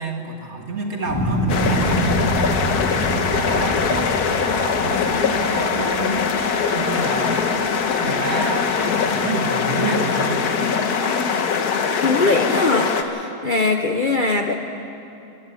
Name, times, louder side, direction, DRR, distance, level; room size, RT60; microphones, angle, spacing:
voice 1, 0.0-6.3 6.7-10.5, right 2 dB, 45° right, 2 dB, 2.1 m, -29 dB
sound 1, 1.1-7.4 7.8-8.4, right 1 dB, 15° left, 1.9 m, -27 dB
sound 2, 1.5-13.0, left 6 dB, 75° left, 1.6 m, -22 dB
voice 2, 12.0-14.5, left 3 dB, 40° left, 3 dB, 0.8 m, -21 dB
28.5 x 11.0 x 8.3 m, 2.8 s
omnidirectional pair, 1.7 m